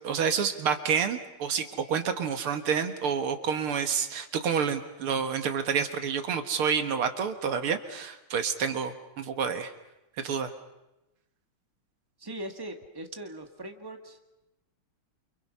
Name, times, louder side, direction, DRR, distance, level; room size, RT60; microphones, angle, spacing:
voice 1, 0.0-9.7 10.2-10.5, right 6 dB, 85° right, 8 dB, 2.4 m, -29 dB
voice 2, 12.2-14.2, right 1 dB, 10° right, 4 dB, 2.0 m, -40 dB
29.5 x 28.5 x 5.6 m, 0.96 s
omnidirectional pair, 2.3 m